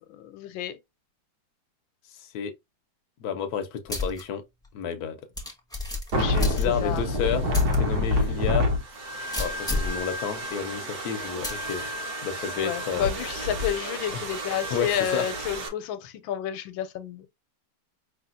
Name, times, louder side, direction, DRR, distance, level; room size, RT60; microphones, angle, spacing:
voice 1, 0.1-0.8 6.1-7.0 12.6-17.3, left 10 dB, 90° left, 1.4 m, -31 dB
voice 2, 2.2-2.5 3.2-4.4 4.7-5.2 6.3-8.7 9.4-11.8 12.2-13.1 14.1-14.3 14.7-15.3, left 7 dB, 65° left, 1.0 m, -31 dB
sound 1, 3.9-4.2 4.6-4.7 5.4-7.0 7.5-7.8 8.2-8.3 9.3-10.0 11.4-11.7, left 2 dB, 5° left, 0.7 m, -30 dB
sound 2, 6.1-15.7, left 1 dB, 60° right, 1.2 m, -29 dB
4.9 x 3.3 x 2.5 m
omnidirectional pair, 2.1 m